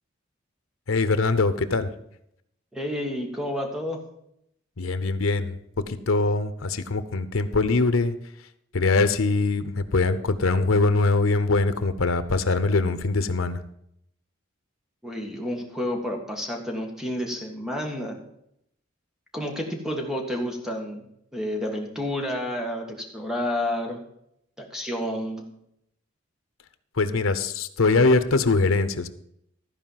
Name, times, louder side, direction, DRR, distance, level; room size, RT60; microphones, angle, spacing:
voice 1, 0.9-1.9 4.8-5.6 5.9-8.2 8.7-13.6 26.9-29.1, left 3 dB, 85° left, 12 dB, 0.8 m, -22 dB
voice 2, 2.7-4.0 15.0-18.2 19.3-21.0 21.3-24.0 24.6-25.4, left 1 dB, 5° right, 1 dB, 1.8 m, -30 dB
14.0 x 4.9 x 7.4 m, 0.75 s
head